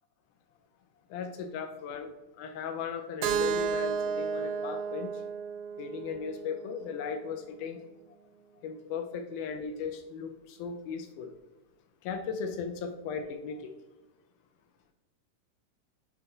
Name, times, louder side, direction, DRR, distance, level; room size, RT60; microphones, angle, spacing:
voice 1, 1.1-2.1 2.4-5.2 5.8-7.8 8.6-11.3 12.0-13.7, left 6 dB, 80° left, 5 dB, 1.9 m, -37 dB
Keyboard (musical), 3.2-7.1, right 6 dB, 85° right, 2.2 m, -33 dB
7.7 x 3.2 x 3.9 m, 1.0 s
omnidirectional pair, 3.9 m